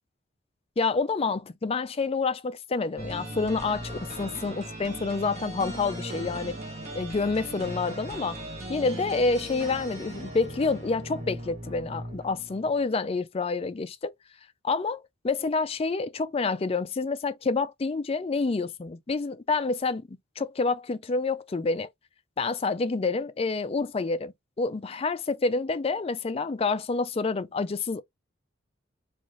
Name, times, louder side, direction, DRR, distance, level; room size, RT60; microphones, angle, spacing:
voice 1, 0.8-6.5 6.9-8.4 8.7-14.1 14.6-21.9 22.4-28.0, left 4 dB, 30° left, 0.4 m, -28 dB
sound 1, 3.0-12.8, right 1 dB, 35° right, 1.2 m, -38 dB
3.8 x 2.5 x 3.1 m
head